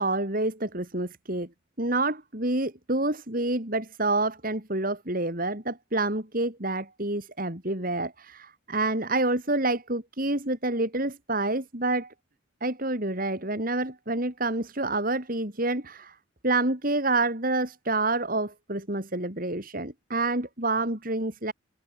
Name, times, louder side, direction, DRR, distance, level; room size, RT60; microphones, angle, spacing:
voice 1, 0.0-1.5 1.8-12.1 12.6-16.2 16.4-21.5, right 2 dB, 45° right, 3.8 m, -28 dB
head